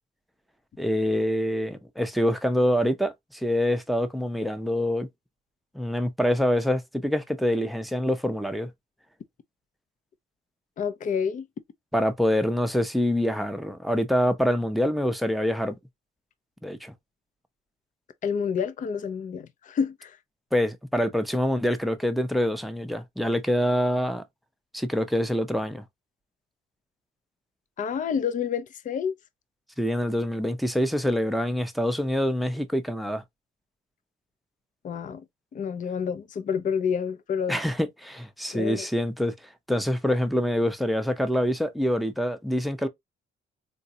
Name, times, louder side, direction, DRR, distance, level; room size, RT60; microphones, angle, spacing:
voice 1, 0.8-5.1 5.7-8.7 11.9-15.7 16.6-16.9 20.5-24.2 24.7-25.8 29.8-33.2 37.5-39.3 39.7-42.9, equal, ahead, 0.6 m, -25 dB
voice 2, 10.8-11.5 18.2-20.2 27.8-29.2 34.8-35.2 35.5-37.6 38.5-38.9, left 7 dB, 40° left, 0.5 m, -28 dB
3.9 x 2.3 x 2.7 m
cardioid pair, 90°, 20 cm